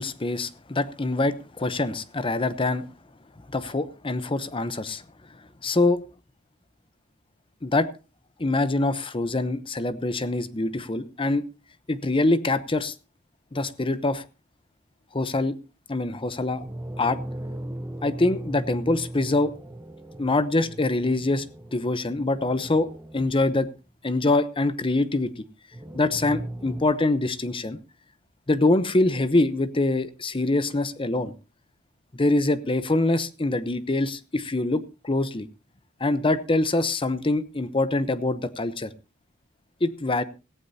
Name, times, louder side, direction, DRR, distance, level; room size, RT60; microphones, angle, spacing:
voice 1, 0.0-2.9 3.5-5.0 5.6-6.0 7.6-7.9 8.4-11.4 11.9-12.9 13.5-14.2 15.1-15.6 15.9-16.6 17.0-17.2 18.0-19.5 20.2-21.4 21.7-22.9 23.1-23.7 24.0-25.3 25.9-27.8 28.5-31.3 32.1-35.5 36.0-38.9 39.8-40.2, left 2 dB, 25° left, 14 dB, 0.8 m, -24 dB
sound 1, 16.4-23.7 25.7-26.8, right 1 dB, 10° right, 0.9 m, -38 dB
17.5 x 14.5 x 2.8 m, 0.31 s
head